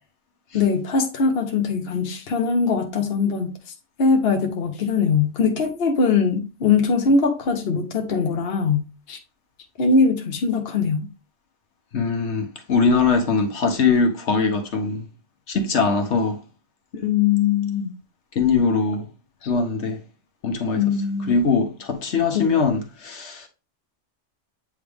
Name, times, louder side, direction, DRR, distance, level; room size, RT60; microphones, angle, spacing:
voice 1, 0.5-3.5 4.0-9.2 9.8-11.1 16.9-18.0 19.4-19.5 20.7-21.4 22.3-22.6, left 5 dB, 55° left, 1.1 m, -21 dB
voice 2, 11.9-15.0 15.5-16.4 18.3-19.0 19.5-20.0 20.4-20.8 21.3-23.5, left 4 dB, 70° left, 1.3 m, -21 dB
8.6 x 3.3 x 3.5 m
omnidirectional pair, 1.2 m